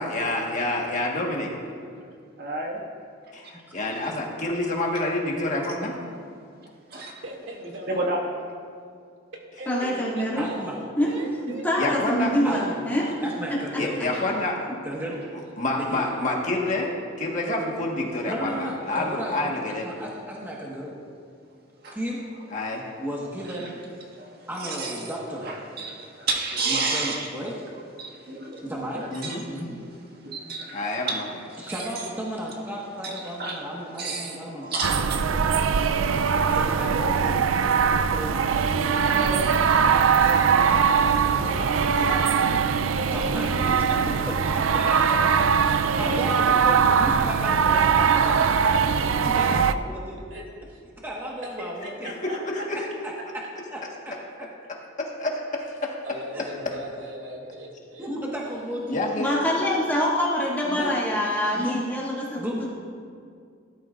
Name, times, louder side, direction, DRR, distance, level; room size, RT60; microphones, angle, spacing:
voice 1, 0.0-1.5 3.3-5.9 11.8-12.3 13.8-14.5 15.6-16.9 17.2-19.9 22.5-22.8 29.1-29.4 30.7-31.3 37.2-37.4 52.0-52.9 55.0-56.0 58.9-59.3, left 2 dB, 40° left, -1 dB, 1.5 m, -28 dB
voice 2, 2.4-2.8 3.4-3.5 3.9-4.1 6.9-7.2 7.9-8.2 14.1-14.2 21.8-22.0 23.5-23.7 24.1-25.1 25.4-27.3 28.0-29.9 30.2-31.2 31.5-31.9 33.0-35.5 36.0-37.1 37.5-38.3 38.7-39.0, right 3 dB, 50° right, -2 dB, 1.9 m, -32 dB
voice 3, 7.2-8.1 9.6-10.6 11.0-12.6 44.8-45.7 50.3-50.4 50.7-50.8 51.6-52.4 56.0-58.1, right 1 dB, 70° right, -2 dB, 2.5 m, -39 dB
voice 4, 9.7-10.4 11.0-13.1 59.2-62.7, equal, 10° left, -7 dB, 2.3 m, -25 dB
voice 5, 10.4-10.8 12.4-12.9 13.2-14.0 14.8-16.1 18.2-19.5 19.8-20.9 21.9-22.2 23.0-23.8 24.5-25.6 26.7-27.5 28.6-29.7 31.6-35.1 35.3-35.5 36.4-37.7 38.2-38.7 39.0-39.5 39.8-42.5 43.1-45.2 45.6-45.7 46.0-48.9 49.2-50.2 51.0-52.1 53.0-53.4 53.7-54.1 56.3-56.4 58.0-59.0 59.6-59.7 60.6-60.9 61.5-61.8 62.4-62.7, equal, 10° right, -4 dB, 1.4 m, -34 dB
sound 1, 34.8-49.7, right 6 dB, 90° right, 0.5 m, -21 dB
18.0 x 12.5 x 2.5 m, 2.3 s
head